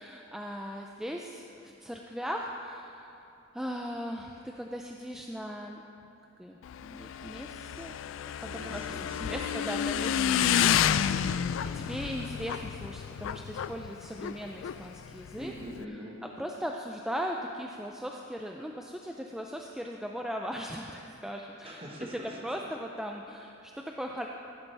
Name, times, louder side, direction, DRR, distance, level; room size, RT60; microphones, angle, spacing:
voice 1, 0.0-3.3 3.5-5.8 6.4-8.0 8.3-10.1 10.5-11.4 11.7-15.5 15.9-16.0 16.4-21.8 22.4-24.3, equal, 5° right, 1 dB, 0.4 m, -38 dB
Motorcycle / Engine, 6.6-15.8, left 9 dB, 75° left, 0.3 m, -30 dB
voice 2, 8.4-10.5 15.4-16.2 21.3-22.4, equal, 30° right, -1 dB, 1.4 m, -44 dB
15.0 x 11.0 x 3.4 m, 2.9 s
head